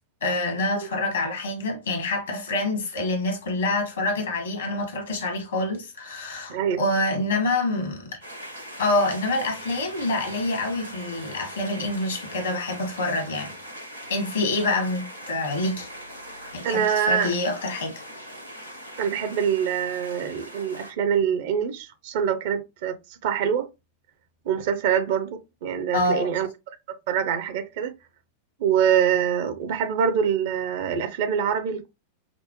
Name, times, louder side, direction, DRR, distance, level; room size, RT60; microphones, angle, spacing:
voice 1, 0.2-8.2 8.8-13.5 14.1-15.9 16.5-18.0 25.9-26.3, left 2 dB, 65° left, 1.2 m, -26 dB
voice 2, 6.5-6.8 16.6-17.3 19.0-23.7 24.4-26.5 27.1-27.9 28.6-31.9, right 8 dB, 55° right, 0.7 m, -24 dB
sound 1, 8.2-20.9, equal, 85° right, 1.9 m, -41 dB
5.1 x 2.0 x 3.0 m
figure-of-eight pair, 90°, 0 cm